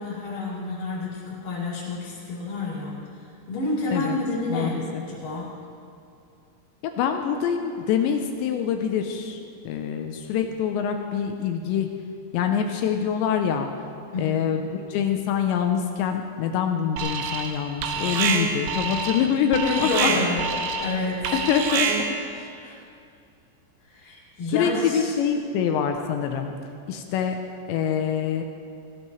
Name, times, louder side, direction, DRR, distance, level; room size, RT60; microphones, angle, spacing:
voice 1, 0.0-3.0 3.5-5.5 14.1-14.5 19.6-21.3 22.6-22.8 23.9-25.1, left 3 dB, 45° left, -8 dB, 4.7 m, -29 dB
voice 2, 4.5-5.0 6.8-9.4 9.7-11.9 12.3-13.7 14.2-20.1 21.3-21.9 22.3-22.5 24.5-26.5 26.9-27.4 27.7-28.4, left 8 dB, 80° left, 5 dB, 2.8 m, -25 dB
Alarm, 17.0-17.6 17.8-22.3, right 5 dB, 80° right, 3.0 m, -26 dB
18.0 x 16.5 x 3.2 m, 2.4 s
omnidirectional pair, 5.5 m